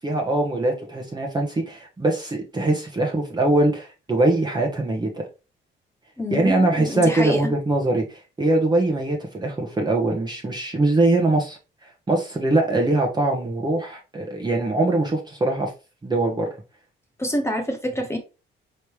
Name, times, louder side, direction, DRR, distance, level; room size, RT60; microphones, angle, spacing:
voice 1, 0.0-5.3 6.3-11.6 12.1-15.7 16.0-16.5, right 2 dB, 20° right, 0 dB, 1.0 m, -22 dB
voice 2, 6.2-7.5 17.2-18.2, equal, 15° left, 2 dB, 1.3 m, -26 dB
4.3 x 3.3 x 3.2 m, 0.31 s
cardioid pair, 90°, 20 cm